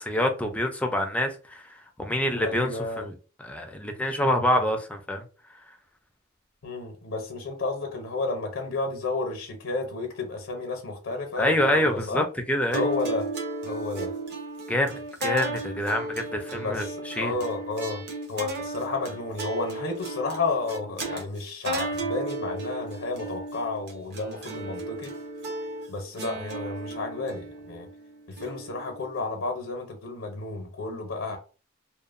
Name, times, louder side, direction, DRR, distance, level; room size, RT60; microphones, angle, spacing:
voice 1, 0.0-1.6 2.0-3.1 3.4-5.2 11.4-12.8 14.7-17.3, left 1 dB, 5° left, 0.4 m, -26 dB
voice 2, 2.4-3.1 6.6-12.3 12.7-13.3 13.6-14.1 16.6-25.1 25.9-27.9 28.3-31.4, left 3 dB, 80° left, 0.6 m, -32 dB
sound 1, 12.7-29.2, right 2 dB, 55° right, 0.8 m, -35 dB
2.8 x 2.0 x 2.4 m
head